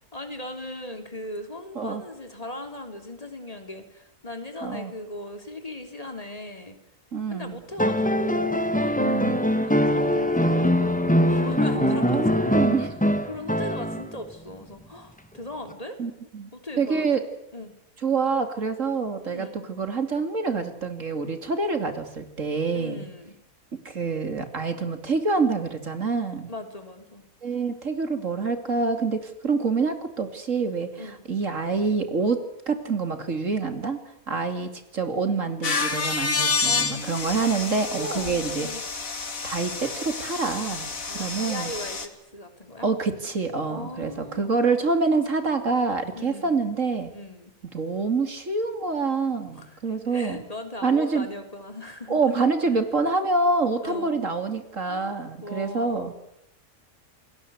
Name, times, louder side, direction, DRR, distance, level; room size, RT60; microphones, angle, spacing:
voice 1, 0.1-6.8 7.3-12.6 13.3-16.0 16.5-17.2 17.5-17.7 19.2-19.7 22.7-23.3 26.5-27.3 31.0-31.2 34.3-34.4 36.6-37.6 37.9-38.8 41.1-42.9 43.6-44.6 46.1-46.6 47.1-47.5 49.5-49.8 50.0-52.4 53.8-54.2 54.8-56.1, left 1 dB, 25° left, 6 dB, 3.5 m, -38 dB
voice 2, 4.6-4.9 7.1-7.6 9.0-9.4 11.8-12.9 16.0-16.5 16.8-17.2 18.0-23.0 23.7-26.5 27.4-32.4 32.7-34.0 34.3-38.7 39.4-41.7 42.8-47.1 47.7-50.4 50.8-51.3 52.1-56.1, right 4 dB, 60° right, 8 dB, 3.1 m, -26 dB
sound 1, 7.8-14.2 15.7-15.8, equal, 5° left, 1.6 m, -23 dB
sound 2, 35.6-42.1, left 4 dB, 70° left, 2.7 m, -29 dB
28.5 x 21.0 x 8.1 m, 0.80 s
omnidirectional pair, 1.5 m